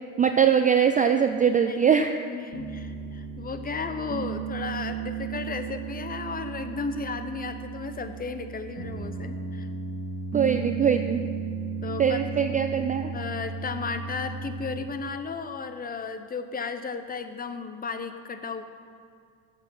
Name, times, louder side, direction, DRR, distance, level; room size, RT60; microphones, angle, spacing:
voice 1, 0.2-2.2 10.3-11.2 12.0-13.1, right 7 dB, 20° right, 7 dB, 0.3 m, -22 dB
voice 2, 1.5-9.7 11.8-12.2 13.1-18.6, left 5 dB, 20° left, 9 dB, 0.7 m, -34 dB
Piano, 2.5-15.0, right 5 dB, 40° right, 2.0 m, -35 dB
8.7 x 6.7 x 6.2 m, 2.2 s
supercardioid pair, 85°, 40 cm